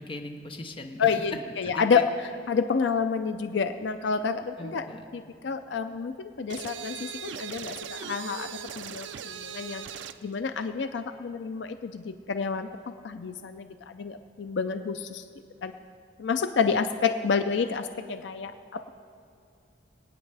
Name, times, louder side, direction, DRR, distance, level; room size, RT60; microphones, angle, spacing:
voice 1, 0.0-2.0 4.6-5.1, left 2 dB, 25° left, 4 dB, 0.8 m, -39 dB
voice 2, 1.0-2.1 2.5-4.8 5.1-8.5 8.8-9.8 10.2-12.7 13.0-13.7 13.9-15.2 15.6-15.7 16.2-18.9, left 5 dB, 70° left, 9 dB, 0.5 m, -29 dB
sound 1, 6.5-10.2, right 7 dB, 70° right, 0.4 m, -39 dB
25.0 x 9.0 x 3.3 m, 2.5 s
head